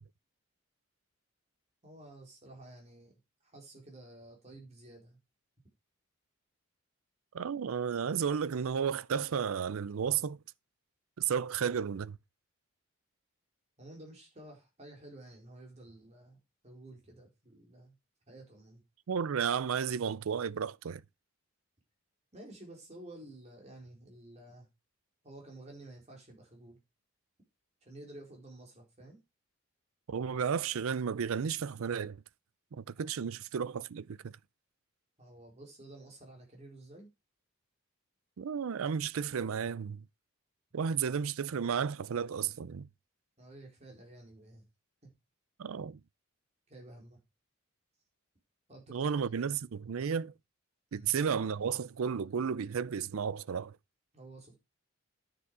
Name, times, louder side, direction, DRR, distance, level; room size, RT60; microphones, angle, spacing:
voice 1, 1.8-5.2 13.8-17.9 18.3-18.8 22.3-24.7 25.2-26.8 27.8-29.2 33.0-33.1 35.2-37.1 43.4-44.6 46.7-47.2 48.7-49.3 50.9-51.1 54.1-54.5, right 1 dB, 30° right, 4.2 m, -52 dB
voice 2, 7.3-10.4 11.2-12.2 19.1-21.0 30.1-32.2 32.7-34.3 38.4-40.0 40.7-42.9 45.6-46.0 48.9-50.3 50.9-53.8, right 7 dB, 75° right, 0.4 m, -33 dB
9.9 x 6.9 x 4.8 m
head